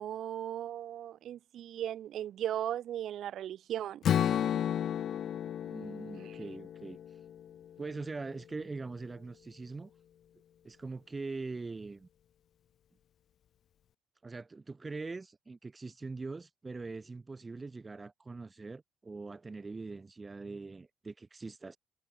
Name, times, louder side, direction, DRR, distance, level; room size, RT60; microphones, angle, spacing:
voice 1, 0.0-4.0 6.2-6.4, right 11 dB, 70° right, 6.2 m, -37 dB
Strum, 4.0-8.2, left 10 dB, 65° left, 0.6 m, -33 dB
voice 2, 5.6-7.0 7.8-9.9 10.6-12.1 14.2-21.8, right 3 dB, 25° right, 4.4 m, -42 dB
cardioid pair, 90°, 0 cm